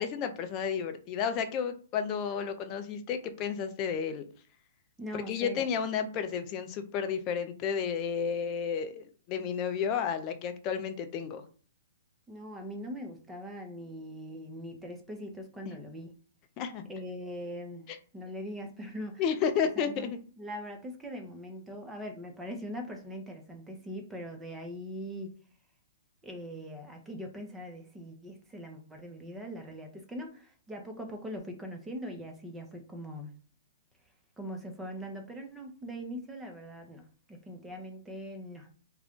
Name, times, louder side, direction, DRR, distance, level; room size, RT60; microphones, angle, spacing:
voice 1, 0.0-4.2 5.1-11.4 16.6-16.8 17.9-18.0 19.2-20.2, left 7 dB, 35° left, 7 dB, 0.5 m, -32 dB
voice 2, 5.0-5.7 12.3-16.1 16.9-17.8 18.1-19.2 19.8-25.3 26.2-33.3 34.4-37.0 37.3-38.7, equal, 10° right, 3 dB, 0.7 m, -41 dB
2.5 x 2.2 x 3.6 m, 0.42 s
hypercardioid pair, 135°, 0 cm